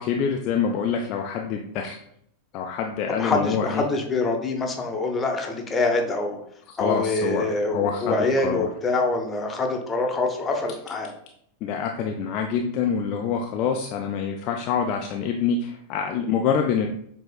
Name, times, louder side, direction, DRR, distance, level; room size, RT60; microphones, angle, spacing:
voice 1, 0.0-2.0 2.5-3.8 6.7-8.7 11.6-16.9, left 6 dB, 40° left, 2 dB, 0.4 m, -26 dB
voice 2, 3.2-6.4 6.8-11.1, left 3 dB, 20° left, 2 dB, 0.8 m, -25 dB
7.4 x 2.8 x 2.4 m, 0.71 s
figure-of-eight pair, 90°, 0 cm